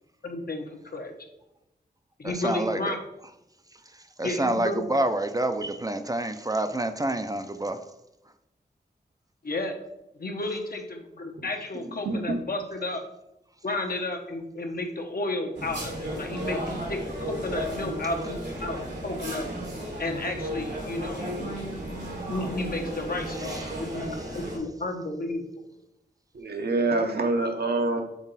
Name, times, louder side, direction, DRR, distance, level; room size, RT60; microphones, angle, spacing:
voice 1, 0.2-1.1 2.2-3.0 4.2-4.9 9.4-9.7 10.2-13.0 13.6-19.5 20.0-21.3 22.3-24.1 24.3-25.6, left 2 dB, 60° left, 3 dB, 1.0 m, -32 dB
voice 2, 2.2-3.0 4.2-7.8, right 1 dB, 20° right, 8 dB, 0.5 m, -27 dB
voice 3, 12.0-12.4 26.3-28.0, right 2 dB, 70° right, 4 dB, 0.9 m, -26 dB
sound 1, 15.5-24.6, equal, 90° right, 1.8 m, -34 dB
6.1 x 3.9 x 4.1 m, 0.89 s
wide cardioid pair, 70°, 17 cm